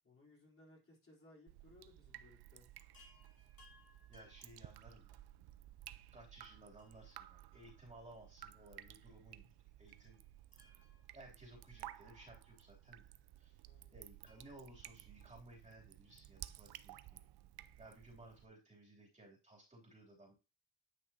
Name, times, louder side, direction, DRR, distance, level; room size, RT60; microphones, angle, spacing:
voice 1, 0.0-2.7 13.6-14.0, left 2 dB, 35° left, -3 dB, 3.7 m, -63 dB
Drip, 1.5-18.5, right 13 dB, 75° right, 0.6 m, -56 dB
Chime, 2.9-5.4 6.8-8.3 8.6-8.7 9.9-12.6 14.2-15.9 17.4-17.5 17.7-17.8, left 3 dB, 60° left, 3.0 m, -70 dB
voice 2, 4.1-5.2 6.1-9.5 9.8-10.2 10.5-10.8 11.1-13.1 13.4-13.6 13.9-17.3 17.8-20.3, right 1 dB, 20° right, -3 dB, 3.0 m, -59 dB
9.8 x 5.9 x 2.8 m, 0.28 s
cardioid pair, 90°, 39 cm